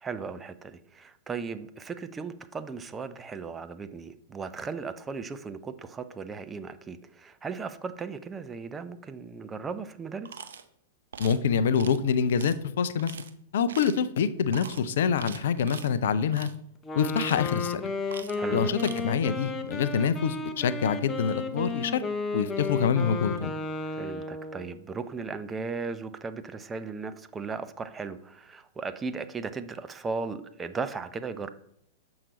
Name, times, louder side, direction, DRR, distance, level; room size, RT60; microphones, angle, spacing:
voice 1, 0.0-10.4 18.4-18.7 23.9-31.5, right 4 dB, 15° right, 11 dB, 0.5 m, -36 dB
sound 1, 10.3-10.6 11.1-11.4 11.8-12.0 12.4-12.5 13.0-13.3 13.7-14.1 14.5-14.8 15.2-15.9 16.3-16.6 17.0-17.7 18.1-18.4 18.7-19.0, right 7 dB, 65° right, 0.5 m, -42 dB
voice 2, 11.2-13.2 13.5-16.5 17.0-17.9 18.5-22.0 22.3-23.5, left 7 dB, 60° left, 14 dB, 0.4 m, -26 dB
Wind instrument woodwind instrument, 16.8-24.8, left 3 dB, 20° left, 0.7 m, -33 dB
7.3 x 4.8 x 4.0 m, 0.72 s
figure-of-eight pair, 100°, 0 cm